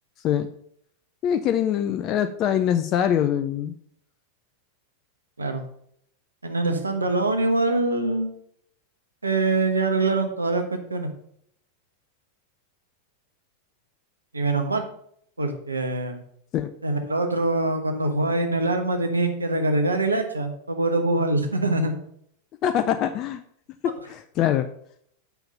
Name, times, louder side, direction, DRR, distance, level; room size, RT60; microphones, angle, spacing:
voice 1, 1.2-3.7 16.5-16.7 22.6-23.4 23.8-24.7, left 10 dB, 35° left, 9 dB, 0.4 m, -23 dB
voice 2, 6.4-8.3 9.2-11.1 14.3-14.8 15.4-16.2 16.8-21.9, right 2 dB, 80° right, 5 dB, 1.2 m, -24 dB
7.1 x 5.7 x 5.3 m, 0.67 s
figure-of-eight pair, 90°, 0 cm